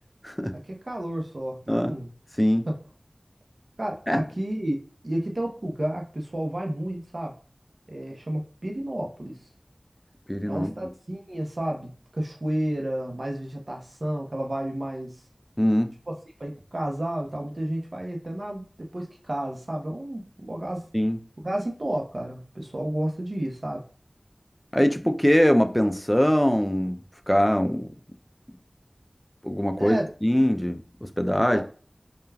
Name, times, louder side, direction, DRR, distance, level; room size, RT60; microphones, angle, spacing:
voice 1, 0.8-2.1 2.7-2.8 3.8-4.8 5.0-7.3 7.9-9.4 10.5-15.2 16.1-16.2 16.4-20.9 21.4-23.8 29.8-30.1 31.5-31.6, right 1 dB, 70° right, 0.6 m, -31 dB
voice 2, 10.3-10.7 15.6-15.9 20.9-21.2 24.7-27.0 27.3-27.9 29.4-31.6, equal, 10° left, 0.3 m, -22 dB
2.3 x 2.2 x 3.2 m
wide cardioid pair, 40°, 0 cm